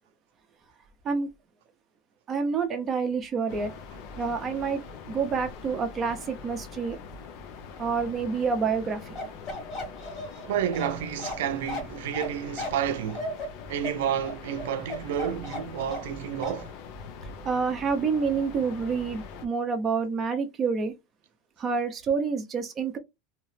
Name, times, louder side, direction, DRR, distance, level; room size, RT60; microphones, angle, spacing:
voice 1, 2.3-3.8 4.2-7.0 7.8-9.0 10.4-10.5 17.4-20.9 21.6-23.0, right 5 dB, 25° right, 0.6 m, -28 dB
sound 1, 3.5-19.5, left 5 dB, 55° left, 0.6 m, -43 dB
Bark, 9.2-16.2 16.4-16.6, left 2 dB, 30° left, 1.5 m, -36 dB
voice 2, 10.4-13.3 13.7-16.7, right 9 dB, 85° right, 0.4 m, -30 dB
2.8 x 2.0 x 3.1 m
supercardioid pair, 145°, 0 cm